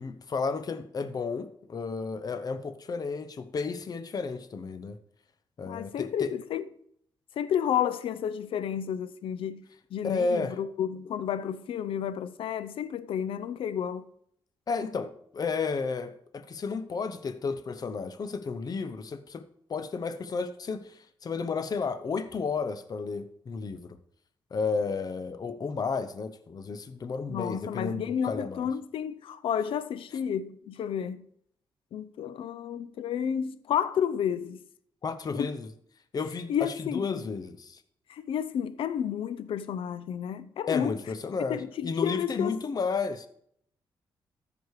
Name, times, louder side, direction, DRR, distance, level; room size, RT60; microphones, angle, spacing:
voice 1, 0.0-5.0 5.6-6.3 10.0-10.6 14.7-19.4 19.7-23.9 24.5-28.7 35.0-35.7 36.1-37.8 40.7-43.3, left 4 dB, 45° left, 0.8 m, -32 dB
voice 2, 5.6-6.7 7.4-9.6 9.9-14.1 27.3-31.3 31.9-34.6 35.3-35.5 36.5-37.2 38.1-40.9 41.5-42.6, left 8 dB, 80° left, 0.6 m, -31 dB
14.0 x 5.0 x 4.8 m
cardioid pair, 85°, 9 cm